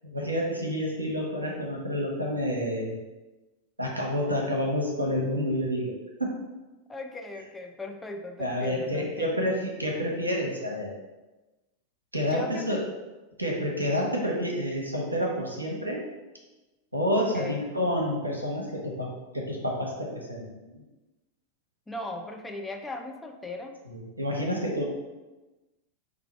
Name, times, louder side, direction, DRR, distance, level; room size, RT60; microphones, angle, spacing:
voice 1, 0.1-3.0 3.8-6.3 8.4-10.9 12.1-12.8 13.4-16.0 16.9-20.8 23.9-24.8, equal, 85° right, -1 dB, 0.9 m, -29 dB
voice 2, 6.9-9.4 12.3-12.9 17.3-17.6 21.9-23.8, left 2 dB, 10° left, 4 dB, 0.4 m, -38 dB
4.5 x 2.4 x 4.5 m, 1.1 s
figure-of-eight pair, 90°, 0 cm